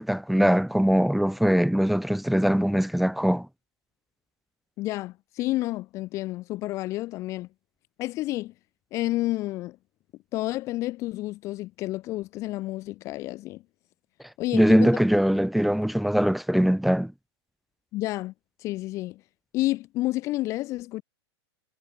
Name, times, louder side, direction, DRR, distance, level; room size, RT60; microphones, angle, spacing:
voice 1, 0.0-3.5 14.5-17.1, equal, ahead, 1.5 m, -22 dB
voice 2, 4.8-7.5 8.0-8.5 8.9-9.8 10.3-13.6 14.4-14.9 17.9-18.3 18.6-19.2 19.5-21.0, left 17 dB, 20° left, 1.4 m, -30 dB
supercardioid pair, 180°, 14 cm